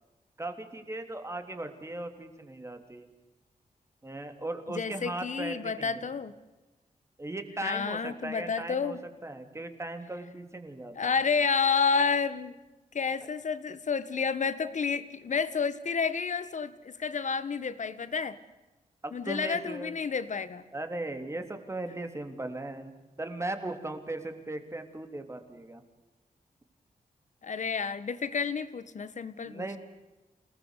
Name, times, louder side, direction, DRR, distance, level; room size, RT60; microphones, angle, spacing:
voice 1, 0.4-3.1 4.0-6.1 7.2-11.1 19.0-19.9 20.7-25.8 29.4-29.8, right 2 dB, 20° right, 7 dB, 3.3 m, -38 dB
voice 2, 4.7-6.3 7.6-9.0 10.9-12.6 12.9-18.4 19.1-20.6 27.4-29.7, left 5 dB, 55° left, 14 dB, 1.7 m, -30 dB
28.5 x 19.5 x 8.3 m, 1.1 s
wide cardioid pair, 125°, 15 cm